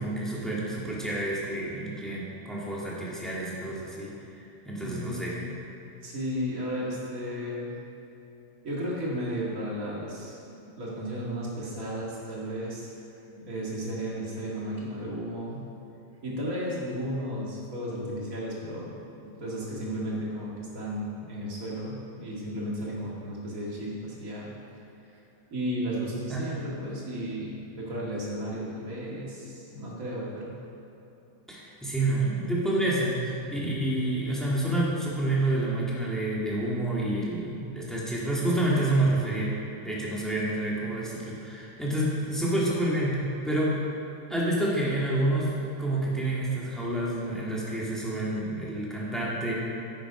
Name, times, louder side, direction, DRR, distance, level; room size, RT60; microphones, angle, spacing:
voice 1, 0.0-4.1 4.6-5.3 26.3-26.4 31.5-39.5 39.8-43.2 43.4-43.8 44.3-49.5, right 1 dB, ahead, -6 dB, 1.6 m, -28 dB
voice 2, 4.8-5.5 6.0-7.8 8.6-12.9 13.3-15.7 16.2-24.8 25.5-30.6, equal, 30° right, -5 dB, 2.3 m, -34 dB
10.5 x 9.2 x 5.0 m, 3.0 s
omnidirectional pair, 3.3 m